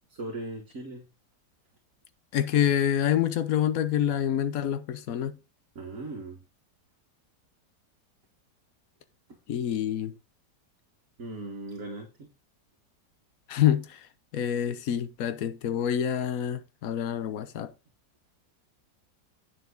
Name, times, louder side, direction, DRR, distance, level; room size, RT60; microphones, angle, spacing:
voice 1, 0.1-1.1 5.8-6.4 11.2-12.3, right 2 dB, 55° right, 2.1 m, -38 dB
voice 2, 2.3-5.4 9.5-10.1 13.5-14.0 14.3-17.7, left 10 dB, 60° left, 1.2 m, -27 dB
9.4 x 6.9 x 3.9 m
omnidirectional pair, 1.8 m